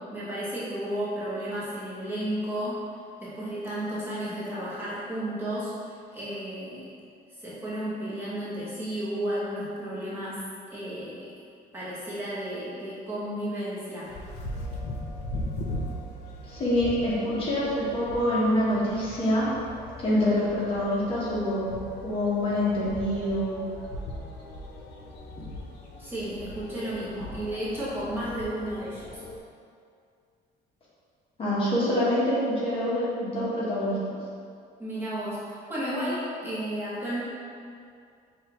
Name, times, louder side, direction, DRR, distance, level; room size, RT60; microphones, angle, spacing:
voice 1, 0.1-2.9 3.2-5.7 6.1-6.8 7.4-10.4 10.7-11.3 11.7-14.1 26.0-29.2 34.8-37.2, right 1 dB, 10° right, -10 dB, 0.9 m, -33 dB
sound 1, 14.1-29.4, left 1 dB, 70° left, 0.5 m, -39 dB
voice 2, 16.5-19.5 20.0-21.7 22.0-23.6 31.4-34.0, left 1 dB, 30° left, -8 dB, 0.9 m, -26 dB
5.5 x 2.4 x 2.8 m, 2.3 s
cardioid pair, 160°, 18 cm